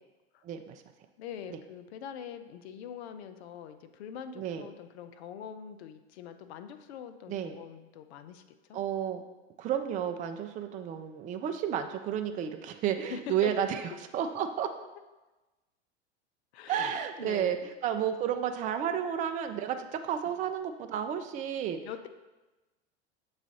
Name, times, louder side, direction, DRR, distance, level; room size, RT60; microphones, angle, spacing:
voice 1, 0.4-0.8 4.4-4.7 7.3-7.5 8.7-9.2 9.6-13.8 14.1-14.7 16.7-17.6 17.8-21.8, right 9 dB, 25° right, 7 dB, 0.4 m, -31 dB
voice 2, 1.2-8.4 8.7-8.8 13.1-13.5 16.5-17.7 21.8-22.1, left 8 dB, 70° left, 9 dB, 0.6 m, -43 dB
7.2 x 3.2 x 4.0 m, 1.1 s
hypercardioid pair, 95°, 34 cm